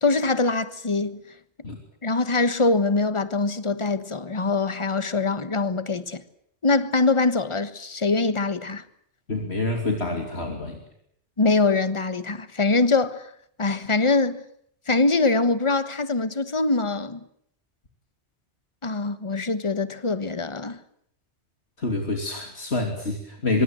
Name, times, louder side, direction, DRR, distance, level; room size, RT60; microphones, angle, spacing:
voice 1, 0.0-1.2 2.0-6.2 6.6-8.8 11.4-13.3 13.6-14.4 14.9-17.2 18.8-20.8, left 3 dB, 25° left, 1.4 m, -23 dB
voice 2, 9.3-10.8 21.8-23.6, left 2 dB, 65° left, 3.4 m, -27 dB
25.0 x 24.5 x 7.8 m
omnidirectional pair, 1.2 m